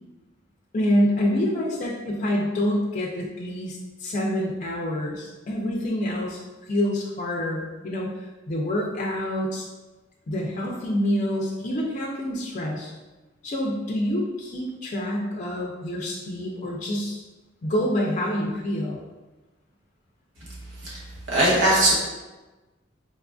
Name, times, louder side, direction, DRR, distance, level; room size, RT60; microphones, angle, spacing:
voice 1, 0.7-6.4 6.7-8.1 8.5-9.6 10.3-12.9 13.4-17.2 17.6-19.0, equal, 40° left, -2 dB, 0.4 m, -27 dB
voice 2, 21.3-21.9, right 1 dB, 90° right, -6 dB, 1.1 m, -19 dB
4.0 x 2.5 x 2.3 m, 1.2 s
head